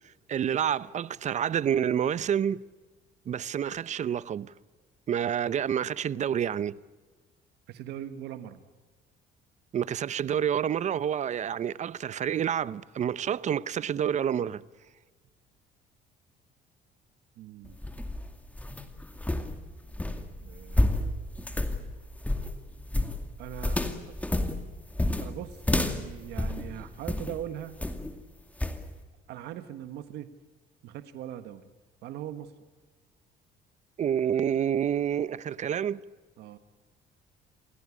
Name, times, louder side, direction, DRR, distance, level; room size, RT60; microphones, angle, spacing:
voice 1, 0.3-2.6 3.3-4.5 5.1-6.8 9.7-14.6 34.0-36.0, right 9 dB, 45° right, 0.7 m, -28 dB
voice 2, 7.7-8.6 17.4-17.8 20.4-21.1 23.4-23.8 25.2-27.8 29.3-30.3 30.8-31.6 32.0-32.5 36.4-36.6, right 11 dB, 80° right, 1.5 m, -40 dB
sound 1, 17.6-27.4 27.8-28.2 28.6-28.8, left 1 dB, 10° left, 2.3 m, -30 dB
28.0 x 17.5 x 8.5 m
cardioid pair, 110°, 17 cm